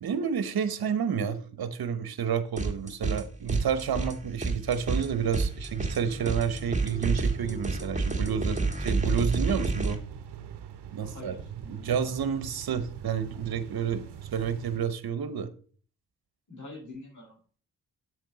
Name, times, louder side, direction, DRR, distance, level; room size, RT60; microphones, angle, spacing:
voice 1, 0.0-10.0 10.9-11.3 11.7-14.1 14.3-15.5, right 7 dB, 65° right, 1.0 m, -30 dB
sound 1, 2.6-3.2 3.5-9.9, right 3 dB, 20° right, 1.6 m, -29 dB
sound 2, 9.4-14.8, right 8 dB, 90° right, 0.8 m, -44 dB
voice 2, 11.0-12.0 16.5-17.6, left 2 dB, 50° left, 4.2 m, -46 dB
7.4 x 6.1 x 4.0 m
cardioid pair, 50°, 39 cm